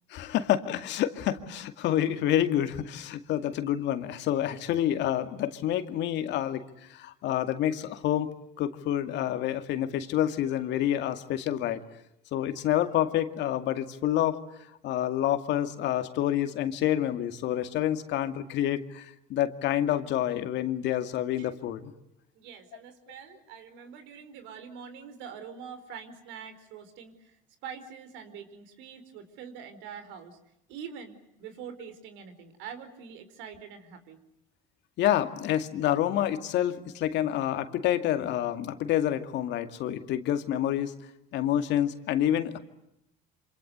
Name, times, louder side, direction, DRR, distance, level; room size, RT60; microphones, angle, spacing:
voice 1, 0.1-6.6 6.9-11.8 12.3-14.4 14.8-21.9 35.0-40.9 41.3-42.6, left 11 dB, 60° left, 8 dB, 2.3 m, -28 dB
voice 2, 22.3-27.4 27.6-30.4 30.7-34.2, right 7 dB, 75° right, 10 dB, 4.6 m, -44 dB
27.0 x 26.5 x 8.1 m, 0.81 s
supercardioid pair, 85°, 20 cm